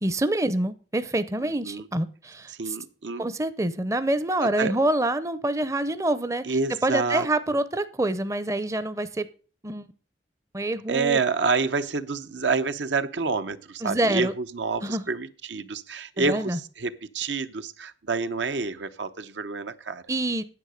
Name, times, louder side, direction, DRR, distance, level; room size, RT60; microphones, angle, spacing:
voice 1, 0.0-2.8 3.2-6.4 6.8-9.3 9.6-9.9 10.5-11.2 13.8-14.3 14.8-15.0 16.2-16.6 20.1-20.4, right 1 dB, 15° right, 0.5 m, -26 dB
voice 2, 1.4-1.9 2.5-3.3 4.4-4.7 6.4-7.3 10.9-20.0, right 4 dB, 80° right, 0.9 m, -28 dB
9.8 x 8.1 x 6.4 m
head